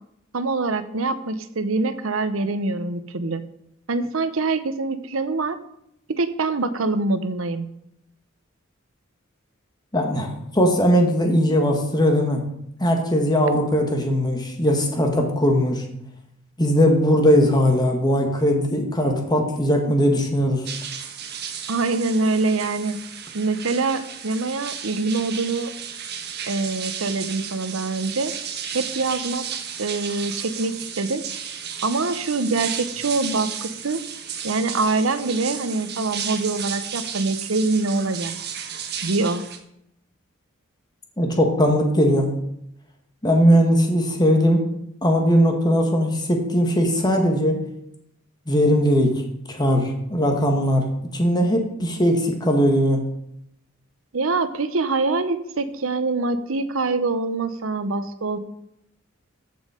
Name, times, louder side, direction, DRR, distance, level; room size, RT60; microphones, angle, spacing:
voice 1, 0.3-3.4 3.9-5.6 6.1-7.7 21.7-23.0 23.3-25.7 26.5-28.3 28.7-29.5 29.8-31.2 31.8-34.0 34.4-38.3 39.0-39.4 54.1-58.4, right 3 dB, 70° right, 11 dB, 0.8 m, -24 dB
voice 2, 9.9-12.4 12.8-15.8 16.6-20.6 41.2-42.3 43.2-44.6 45.0-47.6 48.5-49.2 49.5-50.8 51.1-53.0, equal, 20° left, 3 dB, 1.6 m, -19 dB
sound 1, 20.6-39.6, right 8 dB, 50° right, 1.3 m, -33 dB
14.0 x 5.6 x 5.0 m, 0.78 s
head